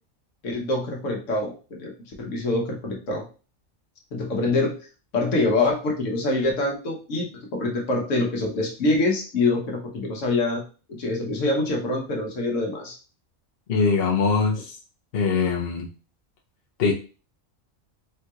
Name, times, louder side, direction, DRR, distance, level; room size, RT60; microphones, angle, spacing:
voice 1, 0.4-3.3 4.1-4.9 5.1-10.6 10.9-13.0, left 2 dB, 75° left, 0 dB, 1.2 m, -25 dB
voice 2, 13.7-14.8 15.1-15.9 16.8-16.9, left 4 dB, 55° left, -1 dB, 0.8 m, -22 dB
3.8 x 2.8 x 2.3 m, 0.35 s
omnidirectional pair, 1.3 m